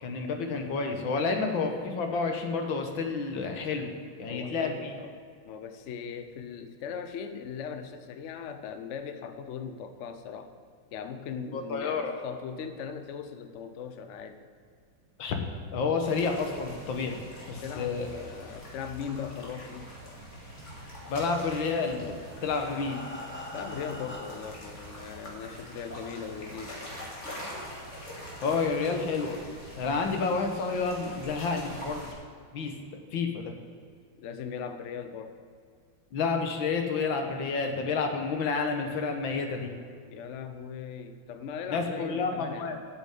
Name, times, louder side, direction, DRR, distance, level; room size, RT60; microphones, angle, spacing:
voice 1, 0.0-3.9 4.2-4.9 11.5-12.1 15.2-15.4 15.7-17.2 17.5-18.1 21.1-22.0 22.4-23.0 28.4-29.4 29.8-32.1 32.5-33.5 36.1-39.7 41.7-42.8, left 4 dB, 70° left, 4 dB, 1.9 m, -30 dB
voice 2, 4.3-10.5 10.9-14.4 17.5-19.9 23.5-26.8 34.2-35.4 40.1-42.9, left 7 dB, 90° left, 8 dB, 0.6 m, -39 dB
sound 1, 16.0-32.1, equal, 35° left, 2.5 m, -44 dB
Breathing, 21.8-24.7 25.5-25.6 26.0-26.1 26.5-26.6, left 1 dB, 10° left, 0.7 m, -43 dB
8.6 x 7.0 x 8.3 m, 2.2 s
omnidirectional pair, 2.3 m